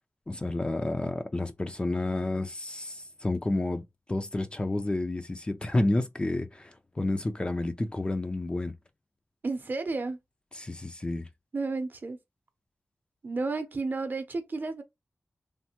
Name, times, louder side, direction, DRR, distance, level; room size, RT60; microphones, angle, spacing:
voice 1, 0.3-3.8 4.1-8.7 10.5-11.3, left 2 dB, 20° left, 0.4 m, -30 dB
voice 2, 9.4-10.2 11.5-12.2 13.2-14.8, right 3 dB, 45° right, 0.6 m, -32 dB
3.2 x 2.1 x 2.8 m
wide cardioid pair, 110°, 5 cm